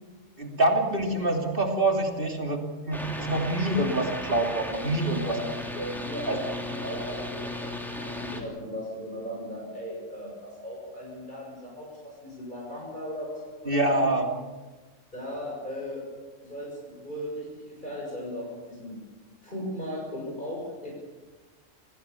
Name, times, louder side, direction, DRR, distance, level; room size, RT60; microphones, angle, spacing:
voice 1, 0.4-5.4 5.8-5.9 6.3-6.4 13.6-14.3, right 2 dB, 45° right, 2 dB, 3.2 m, -26 dB
sound 1, 2.9-8.4, left 1 dB, ahead, 3.2 m, -36 dB
voice 2, 6.0-14.0 15.1-16.0 16.4-19.0 19.4-20.9, equal, 40° left, -3 dB, 6.8 m, -37 dB
28.5 x 16.5 x 7.0 m, 1.2 s
omnidirectional pair, 1.3 m